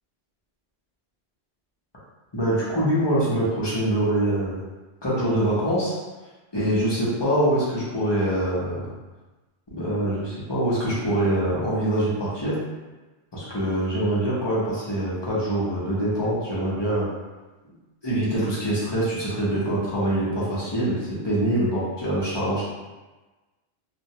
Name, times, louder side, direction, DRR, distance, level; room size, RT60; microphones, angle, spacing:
voice 1, 2.3-4.6 5.0-5.9 6.5-8.9 9.7-12.6 13.3-17.1 18.0-22.6, right 1 dB, 30° left, -8 dB, 0.5 m, -24 dB
2.2 x 2.1 x 2.7 m, 1.2 s
omnidirectional pair, 1.1 m